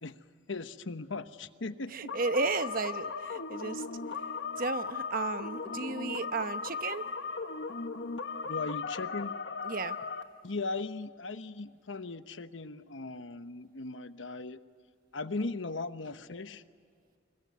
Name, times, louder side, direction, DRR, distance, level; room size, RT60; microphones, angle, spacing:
voice 1, 0.5-2.1 8.4-9.4 10.4-14.6 15.1-16.6, left 3 dB, 90° left, 11 dB, 1.1 m, -38 dB
voice 2, 1.9-3.8 4.6-7.1 9.6-10.0, right 3 dB, 50° right, 11 dB, 1.0 m, -33 dB
sound 1, 2.1-10.2, left 5 dB, 65° left, 1.2 m, -37 dB
26.0 x 22.5 x 9.4 m, 2.2 s
head